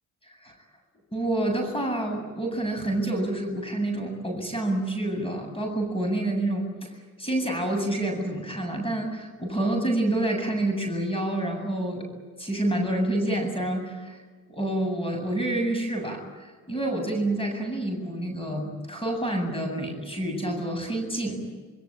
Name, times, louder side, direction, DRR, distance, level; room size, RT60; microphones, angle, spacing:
voice 1, 0.2-0.5 1.1-12.1 12.4-14.2 14.5-21.5, right 1 dB, 20° left, 4 dB, 8.0 m, -28 dB
27.0 x 22.0 x 9.1 m, 1.4 s
cardioid pair, 90°, 30 cm